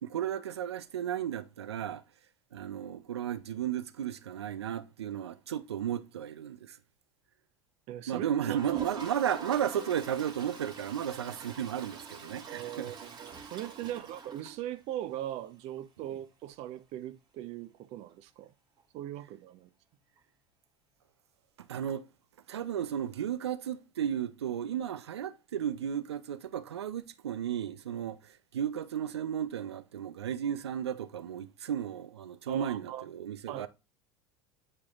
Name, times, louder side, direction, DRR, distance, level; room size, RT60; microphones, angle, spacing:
voice 1, 0.0-2.0 2.5-6.8 8.1-12.9 13.8-13.9 21.7-22.0 22.5-33.7, right 9 dB, 90° right, 0.5 m, -34 dB
voice 2, 7.9-8.8 12.5-18.5 18.9-19.7 32.5-33.1 33.5-33.7, right 12 dB, 55° right, 0.8 m, -40 dB
Toilet flush, 8.4-15.1 15.5-15.6 15.8-15.9 16.1-16.2 18.8-18.9 20.2-20.3, right 4 dB, 35° right, 1.6 m, -45 dB
8.5 x 4.7 x 2.4 m
hypercardioid pair, 85°, 13 cm